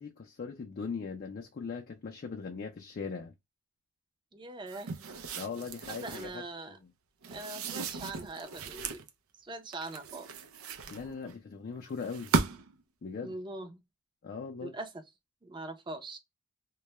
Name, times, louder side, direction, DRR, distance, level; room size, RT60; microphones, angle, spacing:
voice 1, 0.0-3.3 5.3-6.9 10.9-12.3 13.0-13.4 14.2-14.7, left 5 dB, 45° left, 0.4 m, -40 dB
voice 2, 4.3-4.9 5.9-6.8 7.3-9.0 9.4-10.3 13.2-13.8 14.6-14.9 15.4-16.2, right 2 dB, 25° right, 0.5 m, -42 dB
sound 1, 4.7-6.4 7.2-9.1 9.7-11.3 12.0-12.8, right 4 dB, 90° right, 0.4 m, -36 dB
2.2 x 2.1 x 2.8 m
head